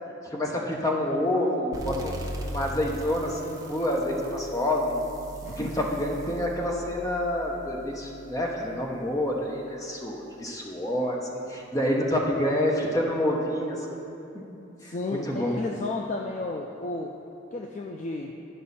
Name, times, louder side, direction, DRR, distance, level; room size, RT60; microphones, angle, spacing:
voice 1, 0.3-2.2 2.5-4.9 5.6-14.1 14.8-15.6, left 1 dB, 15° left, -1 dB, 0.8 m, -28 dB
sound 1, 1.7-9.0, right 1 dB, 15° right, 0.6 m, -40 dB
voice 2, 5.4-5.7 12.2-12.3 14.8-17.1 17.5-18.3, left 2 dB, 35° left, 1 dB, 0.3 m, -33 dB
11.0 x 5.4 x 4.1 m, 2.8 s
head